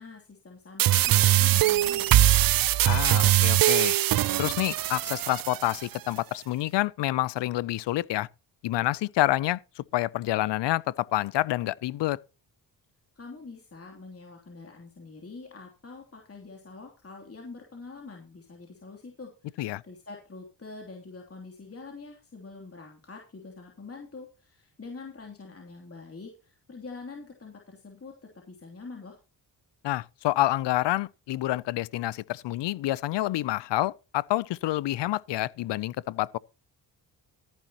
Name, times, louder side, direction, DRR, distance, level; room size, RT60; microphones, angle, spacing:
voice 1, 0.0-2.7 13.2-28.1 28.5-29.2, left 3 dB, 30° left, 3.0 m, -45 dB
sound 1, 0.8-5.8, right 14 dB, 55° right, 0.5 m, -22 dB
voice 2, 2.8-4.0 4.4-8.3 8.6-12.2 19.6-19.8 29.8-36.4, left 16 dB, 70° left, 0.6 m, -28 dB
14.0 x 10.5 x 3.0 m
cardioid pair, 70°, 43 cm